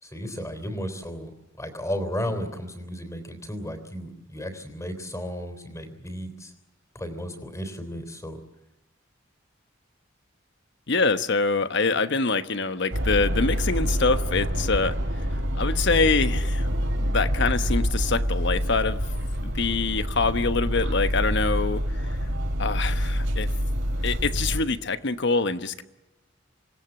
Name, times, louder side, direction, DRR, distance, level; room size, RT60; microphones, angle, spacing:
voice 1, 0.0-1.3 1.6-6.5 6.9-8.4, equal, 15° left, 9 dB, 3.5 m, -34 dB
voice 2, 10.9-15.3 15.6-16.7 17.0-19.0 19.4-22.1 22.6-23.5 24.0-25.8, left 4 dB, 65° left, 11 dB, 1.2 m, -25 dB
sound 1, 12.9-24.6, equal, 75° right, 3.5 m, -26 dB
26.5 x 18.5 x 8.1 m, 1.0 s
head